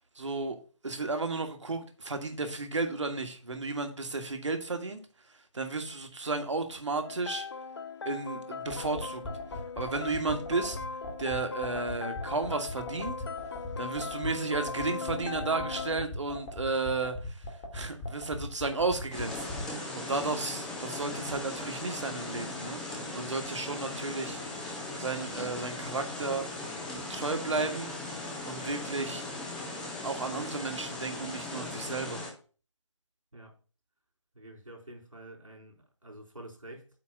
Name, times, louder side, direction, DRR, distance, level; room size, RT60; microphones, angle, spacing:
voice 1, 0.1-0.6 0.8-5.0 5.5-7.4 8.0-9.2 9.8-10.8 11.2-13.1 13.8-17.4 17.7-24.4 25.0-26.4 27.1-27.9 28.4-29.2 30.0-32.2, right 3 dB, 65° right, 1.7 m, -33 dB
sound 1, 7.0-16.0, left 5 dB, 50° left, 0.5 m, -39 dB
sound 2, 8.7-19.6, left 1 dB, 25° left, 1.7 m, -39 dB
sound 3, 19.1-32.3, left 2 dB, 5° left, 0.6 m, -38 dB
voice 2, 34.3-36.9, right 1 dB, 85° right, 4.0 m, -48 dB
8.4 x 3.4 x 6.5 m
figure-of-eight pair, 150°, 16 cm